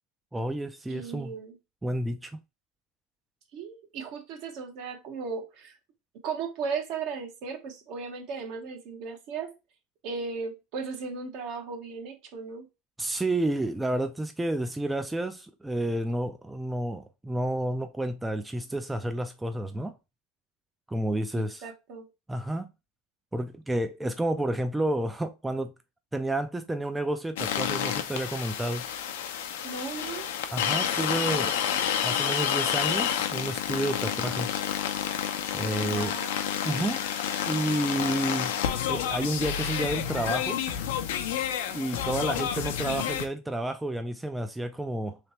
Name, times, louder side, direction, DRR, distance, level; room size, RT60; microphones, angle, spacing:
voice 1, 0.3-1.3 1.8-2.4 13.0-19.9 20.9-21.6 22.3-22.7 23.3-25.7 26.1-28.9 30.5-31.6 32.0-34.6 35.5-36.1 36.6-37.1 37.5-38.5 38.9-40.6 41.7-45.2, right 1 dB, 10° right, 0.4 m, -30 dB
voice 2, 0.9-1.6 3.5-5.8 6.2-9.5 10.0-12.7 21.3-22.1 29.6-30.3 34.0-34.5 35.9-36.7 41.7-42.0, right 5 dB, 60° right, 1.1 m, -37 dB
sound 1, 27.4-43.3, left 9 dB, 80° left, 0.6 m, -29 dB
3.3 x 3.1 x 2.8 m
supercardioid pair, 105°, 0 cm